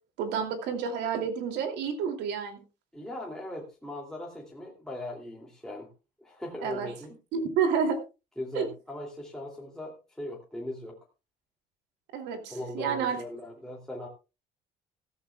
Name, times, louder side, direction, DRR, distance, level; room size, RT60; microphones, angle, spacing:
voice 1, 0.2-2.6 6.6-6.9 7.3-8.0 8.5-8.7 12.1-13.2, right 6 dB, 90° right, 5 dB, 2.8 m, -29 dB
voice 2, 2.9-5.9 6.2-7.2 8.4-11.0 12.5-14.1, left 1 dB, 5° left, -2 dB, 2.8 m, -39 dB
15.5 x 14.0 x 2.3 m, 0.29 s
cardioid pair, 110°, 17 cm